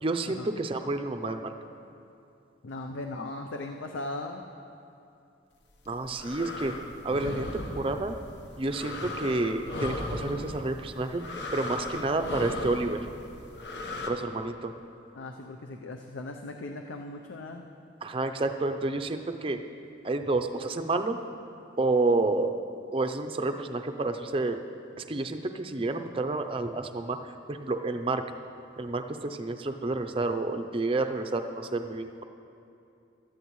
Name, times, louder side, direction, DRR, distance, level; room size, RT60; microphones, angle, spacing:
voice 1, 0.0-1.5 5.9-6.7 7.0-8.2 8.6-11.2 11.5-13.0 14.1-14.7 18.0-19.6 20.0-21.2 21.8-22.6 22.9-24.6 25.0-28.2 28.8-32.2, right 2 dB, 30° right, 6 dB, 0.5 m, -29 dB
voice 2, 2.6-4.5 15.1-17.7, left 2 dB, 75° left, 3 dB, 0.6 m, -38 dB
sound 1, 5.7-14.1, left 2 dB, 60° left, 1.0 m, -37 dB
16.0 x 12.5 x 3.1 m, 2.7 s
head